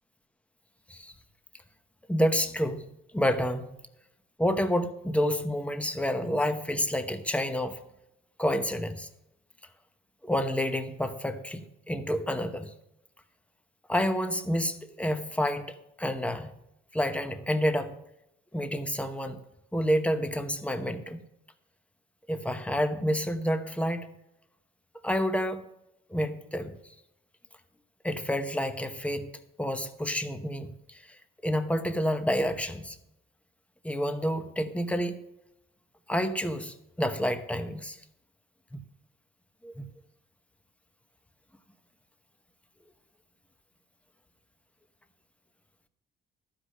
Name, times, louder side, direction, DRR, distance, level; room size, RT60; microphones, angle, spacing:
voice 1, 2.1-2.9 3.1-3.7 4.4-7.8 8.4-9.1 10.2-12.7 13.9-16.5 16.9-17.9 18.5-19.4 19.7-21.2 22.3-24.1 25.0-25.7 26.1-26.7 28.0-29.3 29.6-31.2 31.4-33.0 33.8-35.2 36.1-38.0 38.7-38.8 39.6-39.8, equal, 5° left, 8 dB, 0.9 m, -29 dB
12.0 x 5.0 x 6.4 m, 0.84 s
cardioid pair, 90°, 20 cm